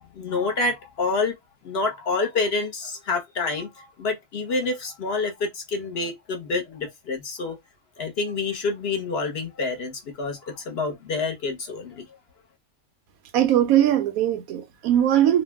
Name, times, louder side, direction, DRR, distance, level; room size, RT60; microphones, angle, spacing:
voice 1, 0.1-1.4 1.6-7.6 8.0-12.0, left 3 dB, 55° left, 0.9 m, -28 dB
voice 2, 13.3-15.4, right 11 dB, 90° right, 1.0 m, -20 dB
2.7 x 2.0 x 3.3 m
omnidirectional pair, 1.4 m